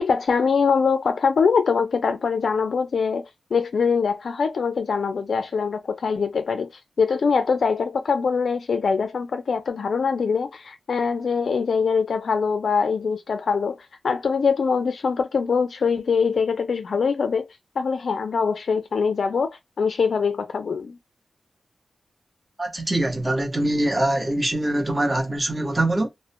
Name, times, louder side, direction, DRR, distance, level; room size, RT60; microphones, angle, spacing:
voice 1, 0.0-6.7 7.0-13.8 14.0-17.5 17.8-21.0, left 5 dB, 70° left, 0.4 m, -23 dB
voice 2, 22.6-26.1, right 1 dB, 20° right, 0.8 m, -23 dB
2.4 x 2.1 x 2.5 m
wide cardioid pair, 105°, 0 cm